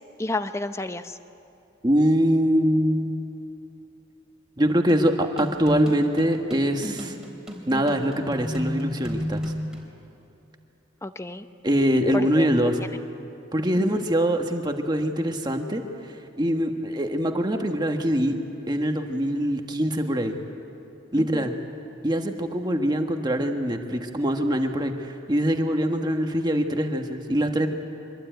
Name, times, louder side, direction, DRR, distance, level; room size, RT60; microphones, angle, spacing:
voice 1, 0.2-1.2 11.0-11.5 12.1-12.5 12.8-12.9 13.7-14.0 21.2-21.5, left 2 dB, 15° left, 10 dB, 0.7 m, -31 dB
voice 2, 1.8-3.1 4.6-7.2 7.7-9.5 11.6-12.8 13.5-15.8 16.4-18.4 18.7-20.3 21.1-21.5 22.0-27.7, equal, 20° right, 4 dB, 1.5 m, -23 dB
sound 1, 4.9-9.9, equal, 5° right, 3.5 m, -33 dB
24.5 x 22.0 x 9.2 m, 2.8 s
head